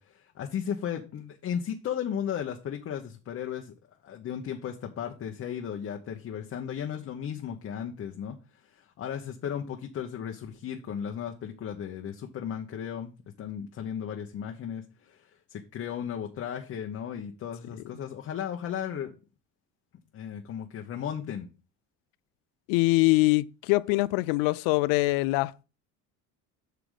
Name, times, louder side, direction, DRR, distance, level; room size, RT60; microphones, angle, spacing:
voice 1, 0.0-3.7 4.0-8.4 8.7-13.1 13.4-19.1 20.1-21.5, left 8 dB, 45° left, 1.0 m, -35 dB
voice 2, 22.7-25.6, left 22 dB, 85° left, 0.5 m, -23 dB
8.3 x 5.9 x 3.8 m
cardioid pair, 115°, 33 cm